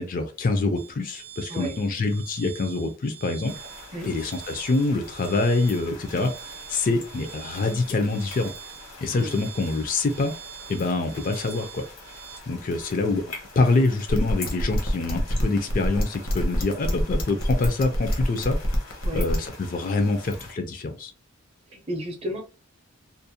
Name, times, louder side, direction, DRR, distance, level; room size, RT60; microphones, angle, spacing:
voice 1, 0.0-3.5 4.1-8.5 9.0-10.3 10.7-11.8 12.5-13.2 13.6-18.6 19.1-21.1, left 3 dB, 40° left, 6 dB, 0.3 m, -25 dB
sound 1, 0.8-12.4, right 10 dB, 85° right, 0.6 m, -44 dB
sound 2, 3.5-20.5, left 3 dB, 85° left, 1.2 m, -44 dB
sound 3, 14.1-19.5, equal, 70° left, 0.7 m, -25 dB
voice 2, 21.7-22.4, equal, 25° right, 3 dB, 0.5 m, -32 dB
2.5 x 2.1 x 2.7 m, 0.34 s
head